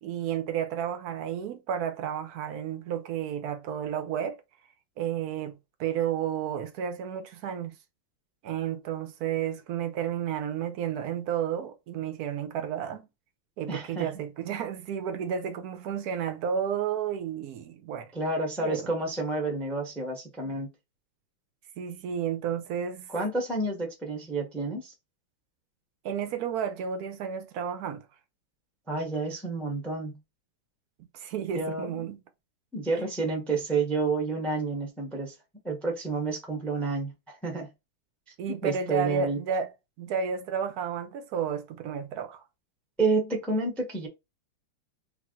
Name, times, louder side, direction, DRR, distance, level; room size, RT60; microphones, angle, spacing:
voice 1, 0.0-4.4 5.0-7.7 8.4-13.1 13.6-18.1 18.6-18.8 20.4-20.6 21.8-23.1 26.0-28.0 31.0-32.2 38.4-39.7 40.0-42.4, right 8 dB, 65° right, 1.0 m, -32 dB
voice 2, 13.7-14.2 18.1-20.7 23.1-24.9 28.9-30.1 31.5-32.1 32.7-35.3 35.6-37.7 38.6-39.4 43.0-44.1, right 3 dB, ahead, 0.6 m, -30 dB
3.5 x 2.5 x 3.7 m
omnidirectional pair, 2.2 m